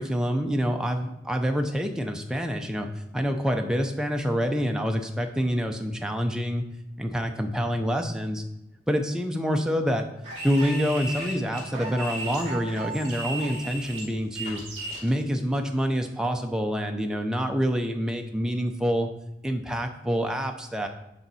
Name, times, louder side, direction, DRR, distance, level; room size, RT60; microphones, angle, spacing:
voice 1, 0.0-2.9 3.1-6.6 7.0-8.4 8.9-10.1 10.4-14.6 15.0-19.1 19.4-20.9, equal, 5° right, 3 dB, 0.6 m, -27 dB
sound 1, 10.2-15.1, right 2 dB, 35° right, 2.5 m, -35 dB
10.5 x 3.9 x 4.1 m, 0.89 s
head